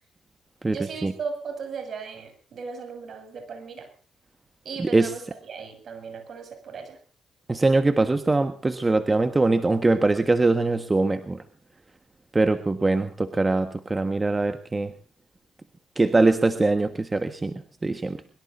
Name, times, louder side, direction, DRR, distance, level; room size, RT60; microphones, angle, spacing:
voice 1, 0.7-3.9 4.6-7.0, right 5 dB, 55° right, 9 dB, 6.7 m, -37 dB
voice 2, 4.8-5.1 7.5-11.4 12.3-14.9 16.0-18.4, right 3 dB, 20° right, 9 dB, 1.4 m, -22 dB
22.5 x 22.5 x 2.6 m, 0.37 s
cardioid pair, 90°, 0 cm